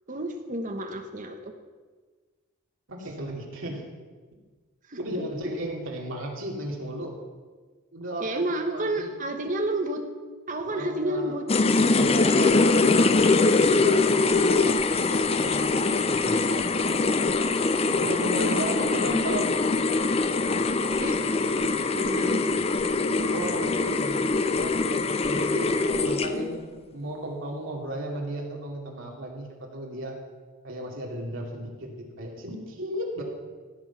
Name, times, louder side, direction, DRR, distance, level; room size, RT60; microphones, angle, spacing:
voice 1, 0.1-1.5 4.9-5.0 5.4-5.5 8.2-10.1 10.5-11.5 18.2-19.6 21.0-21.2 21.9-22.5, right 1 dB, 35° right, 5 dB, 1.2 m, -31 dB
voice 2, 2.9-3.9 5.0-7.1 7.9-9.1 10.6-11.4 11.9-13.3 13.7-14.0 15.4-15.8 16.1-16.4 18.0-19.5 23.0-26.7 26.9-30.2 30.6-33.2, right 1 dB, 65° right, -1 dB, 2.6 m, -35 dB
sound 1, 11.5-26.6, left 3 dB, 25° left, 0.5 m, -23 dB
16.0 x 8.0 x 5.8 m, 1.4 s
head